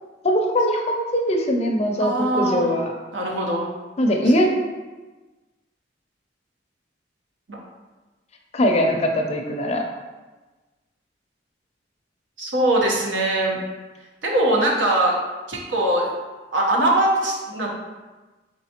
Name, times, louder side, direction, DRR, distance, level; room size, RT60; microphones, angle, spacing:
voice 1, 0.2-2.9 4.0-4.5 8.5-9.8, equal, 35° left, 2 dB, 0.5 m, -21 dB
voice 2, 2.0-2.7 3.1-3.7 4.3-4.4 7.5-7.6 12.4-13.6 14.2-15.2 15.5-16.1 16.5-17.7, right 1 dB, 80° right, -1 dB, 0.9 m, -21 dB
4.4 x 4.0 x 2.9 m, 1.2 s
head